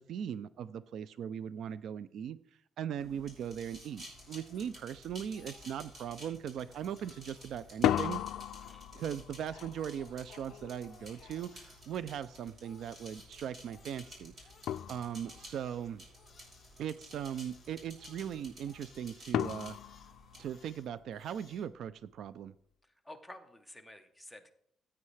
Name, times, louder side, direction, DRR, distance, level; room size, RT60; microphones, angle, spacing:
voice 1, 0.0-2.4 2.8-8.2 8.9-14.3 14.9-16.0 16.8-19.8 20.4-22.5, right 9 dB, 60° right, 16 dB, 0.3 m, -39 dB
sound 1, 3.0-20.5, equal, 35° right, 3.5 m, -53 dB
Crying sobbing, 3.6-5.0 5.2-6.1 6.6-8.8 9.4-13.3 13.6-21.7, left 5 dB, 35° left, 1.6 m, -62 dB
sound 2, 5.1-5.2 5.6-6.1 7.6-12.5 14.1-14.2 14.7-15.6 19.3-21.1, left 11 dB, 75° left, 0.3 m, -36 dB
voice 2, 23.0-24.5, left 1 dB, ahead, 4 dB, 0.9 m, -51 dB
15.0 x 8.4 x 3.2 m, 0.68 s
cardioid pair, 160°, 0 cm